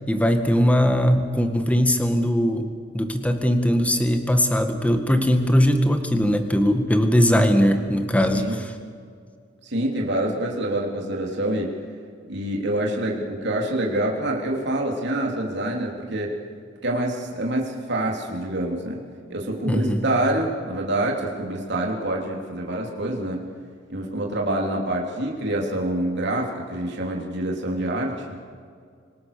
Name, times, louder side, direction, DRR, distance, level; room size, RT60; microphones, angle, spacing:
voice 1, 0.1-2.7 2.9-8.7 19.7-20.0, equal, 5° left, 6 dB, 1.8 m, -20 dB
voice 2, 9.6-11.7 12.3-16.3 16.8-19.0 19.3-23.4 23.9-28.4, right 1 dB, 65° right, -1 dB, 3.3 m, -26 dB
25.5 x 19.0 x 6.8 m, 2.1 s
head